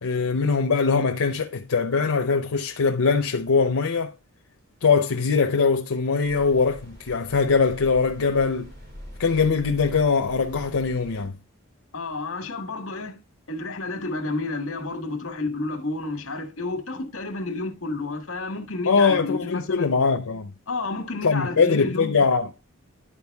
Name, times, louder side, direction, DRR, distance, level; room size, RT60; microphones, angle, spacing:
voice 1, 0.0-4.1 4.8-8.7 9.2-11.4 18.9-20.5 21.2-22.5, left 5 dB, 85° left, 0.7 m, -22 dB
sound 1, 6.2-11.3, equal, 45° right, 2.5 m, -43 dB
voice 2, 11.9-13.2 13.5-19.9 20.7-22.2, left 3 dB, 70° left, 1.5 m, -30 dB
11.5 x 4.6 x 3.4 m
head